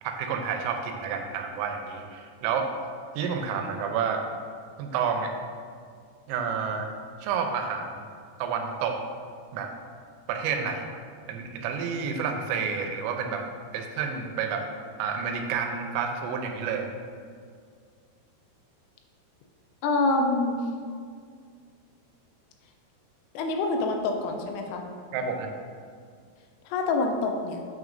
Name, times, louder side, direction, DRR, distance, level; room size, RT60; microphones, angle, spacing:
voice 1, 0.0-2.7 3.2-4.2 4.8-5.3 6.3-6.9 7.2-8.0 8.4-9.0 9.5-9.7 10.3-10.9 11.3-13.5 13.7-14.7 15.0-16.9 25.1-25.5, right 6 dB, 85° right, 4 dB, 3.3 m, -29 dB
voice 2, 19.8-20.6 23.3-24.8 26.7-27.7, left 3 dB, 85° left, 3 dB, 3.1 m, -26 dB
8.6 x 6.2 x 2.6 m, 2.1 s
omnidirectional pair, 5.8 m